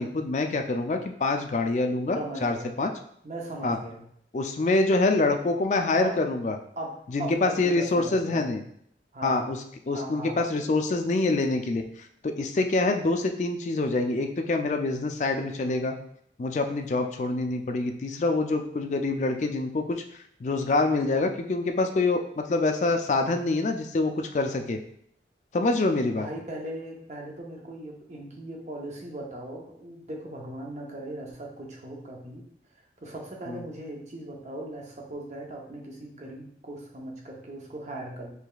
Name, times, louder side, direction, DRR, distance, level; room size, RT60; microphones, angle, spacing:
voice 1, 0.0-2.9 3.6-3.8 4.3-6.6 7.1-8.6 9.2-9.6 9.9-11.8 12.2-15.9 16.4-20.0 20.4-24.8 25.5-26.3 33.5-33.6, left 2 dB, 40° left, 5 dB, 0.3 m, -26 dB
voice 2, 2.1-2.7 3.2-4.0 6.0-6.2 6.8-6.9 7.2-8.4 9.1-9.5 9.9-10.4 26.1-32.5 32.7-38.3, right 1 dB, 40° right, 0 dB, 0.7 m, -38 dB
4.7 x 3.3 x 2.3 m, 0.67 s
head